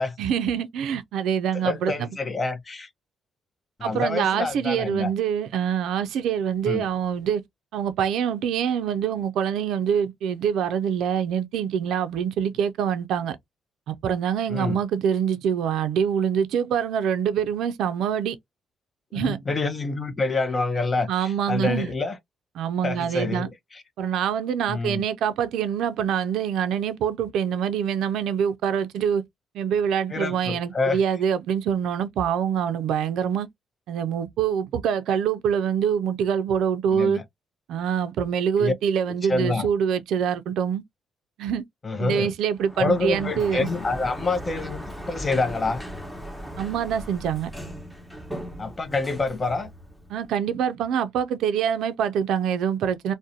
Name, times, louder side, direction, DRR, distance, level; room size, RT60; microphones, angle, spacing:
voice 1, 0.2-2.1 3.8-7.4 7.7-13.4 13.9-18.4 19.1-19.4 21.1-21.9 22.6-23.5 24.0-29.2 29.5-33.5 33.9-37.2 37.7-40.8 41.4-41.6 42.0-43.7 46.6-47.5 50.1-53.1, right 8 dB, 80° right, 0.3 m, -25 dB
voice 2, 1.6-2.9 3.8-5.1 6.7-6.9 14.5-14.8 19.1-22.2 22.8-23.5 24.7-25.0 30.1-31.0 36.9-37.2 38.6-38.7 39.3-39.7 41.8-42.3 42.8-45.8 48.6-49.7, left 3 dB, 30° left, 0.5 m, -27 dB
Sliding door, 42.5-50.3, equal, ahead, 0.9 m, -38 dB
2.4 x 2.0 x 2.6 m
cardioid pair, 90°, 0 cm